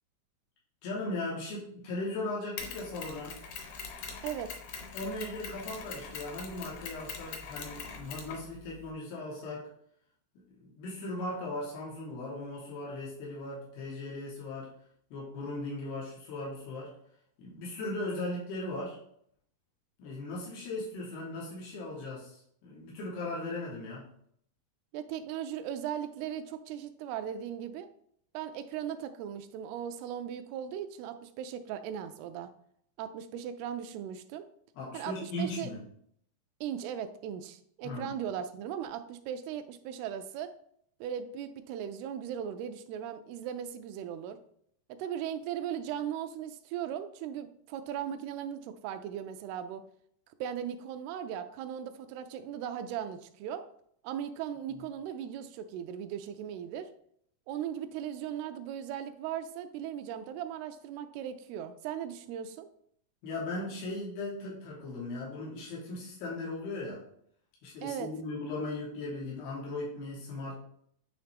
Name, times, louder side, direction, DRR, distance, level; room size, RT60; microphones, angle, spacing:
voice 1, 0.8-3.4 4.9-9.7 10.4-14.7 15.1-16.9 17.4-19.0 20.0-24.1 34.8-35.8 37.8-38.2 63.2-67.0 67.6-70.6, left 2 dB, 90° left, -5 dB, 3.5 m, -38 dB
Mechanisms, 2.6-8.9, left 6 dB, 70° left, 1.9 m, -43 dB
voice 2, 4.2-4.6 24.9-27.9 28.3-32.5 33.0-34.5 34.9-35.7 36.6-40.5 41.0-44.4 44.9-49.8 50.4-53.7 54.0-56.9 57.5-62.7 67.8-68.1, right 9 dB, 90° right, 9 dB, 2.6 m, -38 dB
9.2 x 3.2 x 3.4 m, 0.67 s
omnidirectional pair, 4.4 m